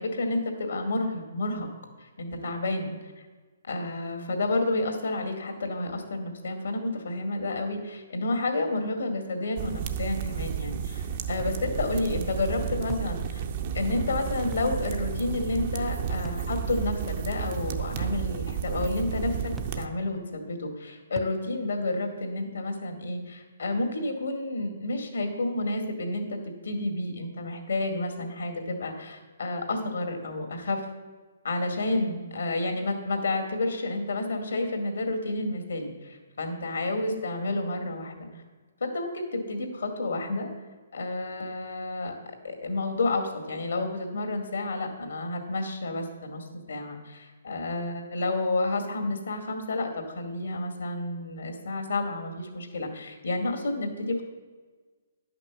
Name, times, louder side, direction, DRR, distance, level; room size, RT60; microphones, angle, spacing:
voice 1, 0.0-1.7 2.0-2.9 3.7-13.4 13.7-26.4 26.6-30.8 31.4-38.3 38.8-40.5 40.9-42.1 42.4-54.2, left 2 dB, 80° left, 4 dB, 2.1 m, -30 dB
sound 1, 9.6-19.9, right 8 dB, 45° right, 0.8 m, -32 dB
sound 2, 12.9-13.1 14.5-14.8 16.2-16.5 18.0-18.2 19.6-19.8 21.2-21.4, right 1 dB, 5° right, 0.3 m, -44 dB
10.5 x 6.0 x 7.1 m, 1.4 s
hypercardioid pair, 145°, 0 cm